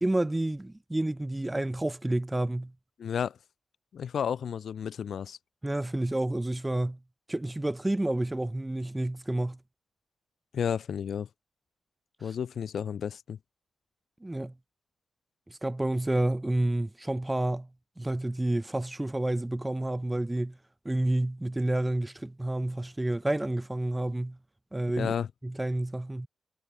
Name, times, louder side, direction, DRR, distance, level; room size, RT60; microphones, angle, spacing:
voice 1, 0.0-2.7 5.6-7.0 7.3-9.6 14.2-14.5 15.5-17.7 18.0-20.5 20.8-24.4 24.7-25.1 25.4-26.3, right 1 dB, 10° right, 0.4 m, -29 dB
voice 2, 3.0-3.4 3.9-5.4 10.5-11.3 12.2-13.4 25.0-25.3, left 8 dB, 55° left, 0.9 m, -32 dB
wide cardioid pair, 175°, 0 cm